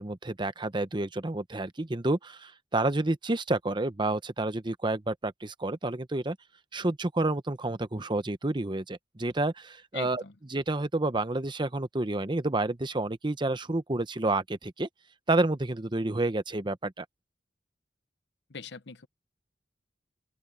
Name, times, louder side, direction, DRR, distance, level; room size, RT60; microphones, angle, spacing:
voice 1, 0.0-6.4 6.7-10.2 10.5-14.9 15.3-17.0, right 2 dB, 25° right, 0.9 m, -29 dB
voice 2, 9.9-10.3 18.5-19.1, left 6 dB, 70° left, 0.9 m, -41 dB
open air
head